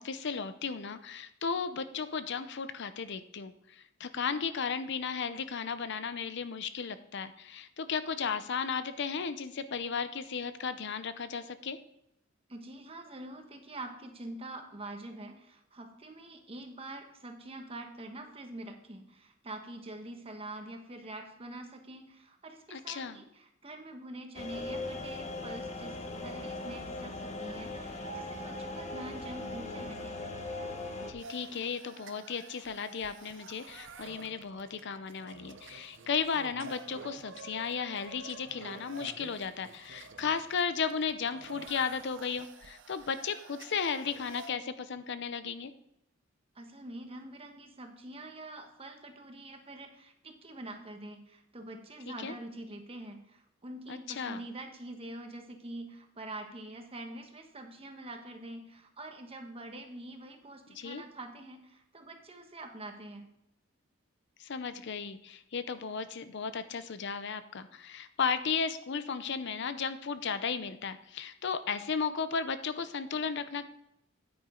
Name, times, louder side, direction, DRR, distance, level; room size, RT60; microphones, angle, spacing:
voice 1, 0.0-11.8 22.7-23.2 31.1-45.7 52.2-52.3 53.9-54.4 60.7-61.0 64.4-73.7, left 6 dB, 60° left, 12 dB, 0.6 m, -35 dB
voice 2, 12.5-30.1 46.5-63.3, right 1 dB, 30° right, 4 dB, 1.3 m, -45 dB
sound 1, 24.3-31.1, left 2 dB, 35° left, 1.1 m, -39 dB
sound 2, 31.2-44.5, right 4 dB, 65° right, 0.8 m, -50 dB
9.4 x 9.1 x 3.8 m, 0.79 s
head